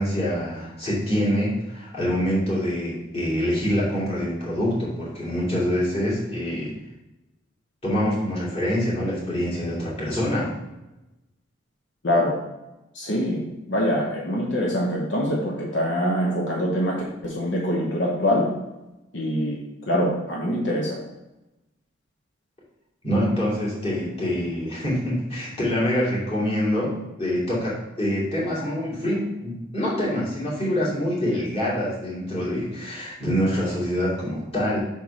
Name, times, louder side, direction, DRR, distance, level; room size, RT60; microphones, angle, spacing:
voice 1, 0.0-6.7 7.8-10.5 23.0-26.9 27.2-34.8, equal, 30° left, -7 dB, 2.4 m, -25 dB
voice 2, 12.0-12.4 12.9-13.4 13.7-18.5 19.1-19.6 19.9-21.0, equal, 70° left, -2 dB, 1.0 m, -24 dB
5.5 x 4.6 x 4.9 m, 0.97 s
head